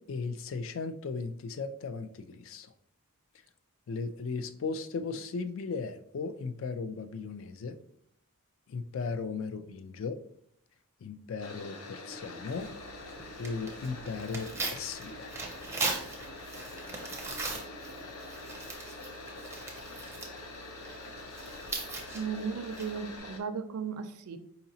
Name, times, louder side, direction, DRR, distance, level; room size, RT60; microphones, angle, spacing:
voice 1, 0.1-2.7 3.9-7.8 8.7-10.2 11.0-12.7 13.4-15.3, left 4 dB, 60° left, 10 dB, 0.3 m, -36 dB
sound 1, 11.4-23.4, left 2 dB, 90° left, 0.7 m, -45 dB
Tearing, 12.4-23.2, right 3 dB, 10° right, 0.5 m, -40 dB
voice 2, 22.1-24.4, right 6 dB, 80° right, 10 dB, 0.4 m, -36 dB
4.7 x 2.8 x 2.7 m, 0.69 s
head